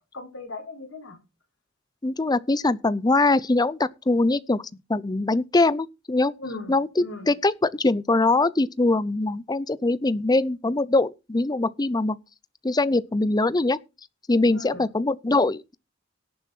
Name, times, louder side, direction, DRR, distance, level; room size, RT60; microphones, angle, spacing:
voice 1, 0.1-1.2 6.4-6.7 7.0-7.3 14.5-14.8, left 2 dB, 70° left, 5.6 m, -37 dB
voice 2, 2.0-4.6 4.9-6.3 6.7-12.2 12.6-13.8 14.3-15.8, left 2 dB, 20° left, 0.6 m, -22 dB
17.5 x 6.9 x 4.5 m
head